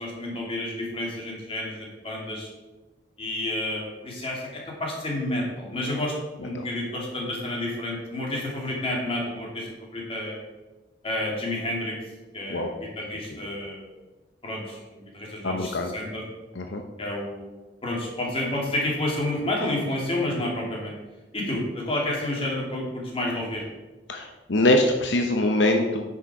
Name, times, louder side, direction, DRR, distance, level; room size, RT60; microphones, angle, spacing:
voice 1, 0.0-2.5 3.2-6.1 6.4-10.4 11.0-12.0 12.3-13.9 14.4-16.2 17.0-17.5 17.8-20.9 21.3-23.6, left 1 dB, 30° left, -2 dB, 2.6 m, -30 dB
voice 2, 15.4-15.9 16.6-16.8 24.1-26.0, left 1 dB, 75° left, 4 dB, 0.8 m, -23 dB
9.5 x 6.6 x 4.8 m, 1.1 s
head